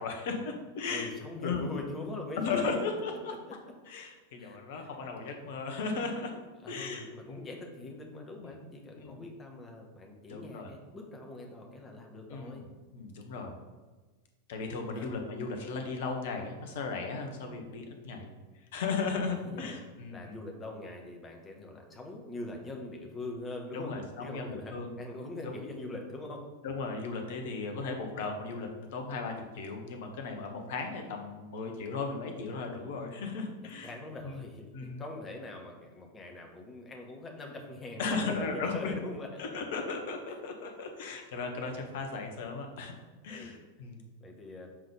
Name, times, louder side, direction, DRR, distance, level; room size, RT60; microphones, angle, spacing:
voice 1, 0.0-1.1 1.4-1.7 2.4-3.3 3.9-6.3 6.7-7.5 8.4-8.7 9.0-9.2 10.3-10.7 12.3-12.5 12.9-13.5 14.5-18.3 18.7-20.4 23.7-24.9 25.4-25.5 26.6-33.9 34.2-34.4 34.7-35.0 38.0-39.0 39.4-42.9 43.2-44.0, left 4 dB, 55° left, 4 dB, 1.2 m, -36 dB
voice 2, 0.8-2.8 3.3-3.4 4.4-4.9 6.6-12.6 14.9-15.1 19.1-19.8 20.1-23.9 24.2-26.4 33.8-39.4 41.6-41.9 43.3-43.6 44.2-44.7, left 2 dB, 20° left, 2 dB, 1.5 m, -43 dB
7.5 x 4.0 x 5.0 m, 1.2 s
figure-of-eight pair, 90°, 0 cm